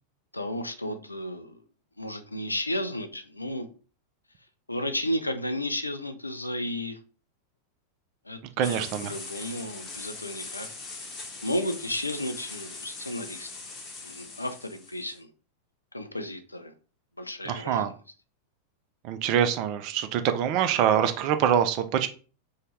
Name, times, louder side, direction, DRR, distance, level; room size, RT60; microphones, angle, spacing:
voice 1, 0.3-1.6 2.0-3.7 4.7-7.0 8.3-10.7 11.4-13.5 14.0-15.3 15.9-16.7 17.2-17.8, left 1 dB, 85° left, 8 dB, 0.3 m, -33 dB
sound 1, 8.6-15.2, left 3 dB, 25° left, 0.8 m, -41 dB
voice 2, 8.6-9.1 17.5-17.9 19.0-22.1, right 9 dB, 40° right, 9 dB, 0.3 m, -25 dB
2.7 x 2.1 x 3.0 m, 0.37 s
figure-of-eight pair, 90°, 0 cm